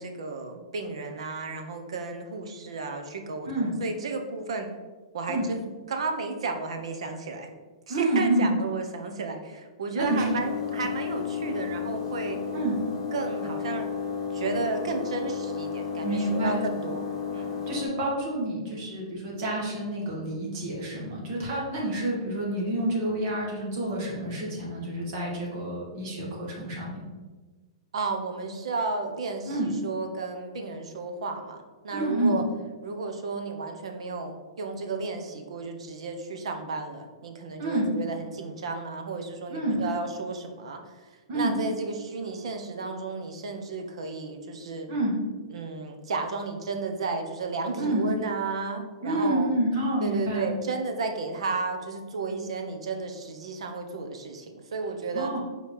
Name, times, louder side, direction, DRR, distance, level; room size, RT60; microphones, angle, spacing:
voice 1, 0.0-4.7 5.1-5.6 5.9-7.5 7.9-12.4 13.1-13.9 14.3-17.0 17.3-17.6 27.9-32.4 32.8-44.9 45.5-49.5 50.0-55.3, right 3 dB, 80° right, 5 dB, 1.0 m, -33 dB
voice 2, 7.9-8.5 9.9-10.2 12.5-12.8 16.0-16.7 17.7-27.0 29.5-29.7 31.9-32.4 37.6-37.9 39.5-39.9 41.3-41.5 44.9-45.1 47.8-48.1 49.0-50.5 55.1-55.4, right 1 dB, 35° right, -4 dB, 1.8 m, -28 dB
sound 1, 10.0-17.9, left 6 dB, 30° left, 1.6 m, -33 dB
4.9 x 4.2 x 5.3 m, 1.3 s
hypercardioid pair, 170°, 3 cm